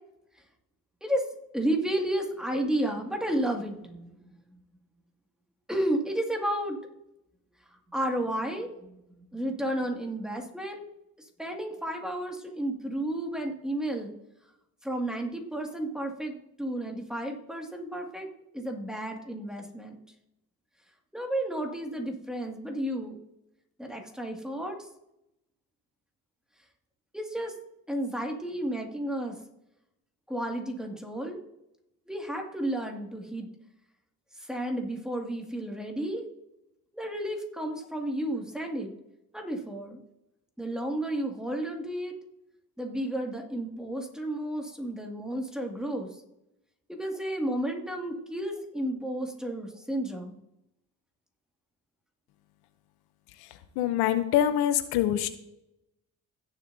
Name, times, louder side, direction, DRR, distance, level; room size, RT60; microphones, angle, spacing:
voice 1, 1.5-4.2 5.7-6.8 7.9-10.8 11.2-14.1 14.8-18.3 18.5-20.0 21.1-23.2 23.8-24.9 27.1-27.5 27.9-29.4 30.3-31.4 32.1-33.5 34.4-36.3 36.9-38.9 39.3-40.0 40.6-42.2 42.8-46.2 46.9-50.4, right 1 dB, ahead, 1 dB, 2.1 m, -32 dB
voice 2, 53.8-55.3, left 11 dB, 90° left, 11 dB, 0.8 m, -24 dB
17.0 x 7.2 x 2.7 m, 0.84 s
supercardioid pair, 75°, 37 cm